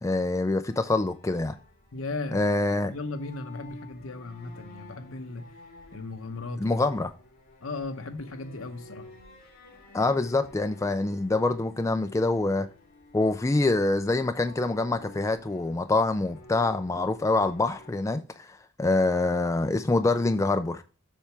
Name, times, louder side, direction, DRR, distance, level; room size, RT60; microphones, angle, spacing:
voice 1, 0.0-1.5 2.3-2.9 6.6-7.1 9.9-12.7 13.1-20.8, left 2 dB, 15° left, 0.3 m, -25 dB
sound 1, 0.7-17.9, left 2 dB, 40° left, 3.0 m, -51 dB
voice 2, 1.9-2.5 2.8-5.5 5.9-6.8 7.6-9.1, left 3 dB, 70° left, 0.9 m, -36 dB
7.3 x 5.8 x 3.4 m
head